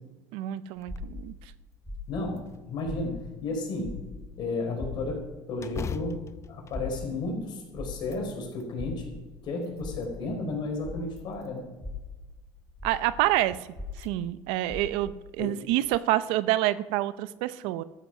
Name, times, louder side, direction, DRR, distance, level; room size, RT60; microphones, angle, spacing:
voice 1, 0.3-1.5 12.8-13.6 14.0-17.8, right 15 dB, 75° right, 16 dB, 0.6 m, -27 dB
sound 1, 0.7-1.3 1.7-1.8 2.4-3.2 5.6-7.6 8.0-8.7 9.3-10.2 11.1-11.8 13.2-13.3 13.9-14.1 14.5-14.6 15.7-16.0, left 6 dB, 30° left, 0.6 m, -42 dB
sound 2, 0.9-3.5 3.8-11.3 11.7-15.2, left 3 dB, 5° left, 5.2 m, -41 dB
voice 2, 2.1-4.0 4.4-6.1 6.5-9.1 9.4-11.6 15.4-15.6, left 2 dB, 55° left, 2 dB, 4.6 m, -33 dB
13.5 x 8.1 x 6.1 m, 1.2 s
supercardioid pair, 90°, 9 cm